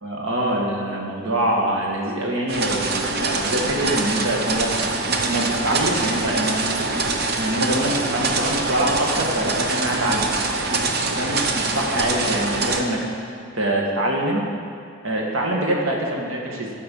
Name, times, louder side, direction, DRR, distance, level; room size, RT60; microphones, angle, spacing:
voice 1, 0.0-4.7 5.2-6.9 7.4-10.3 11.1-13.0 13.5-14.4 15.0-16.7, right 1 dB, 80° right, -1 dB, 1.7 m, -24 dB
sound 1, 2.5-12.8, right 3 dB, 50° right, 0.7 m, -24 dB
12.0 x 5.3 x 5.5 m, 2.5 s
head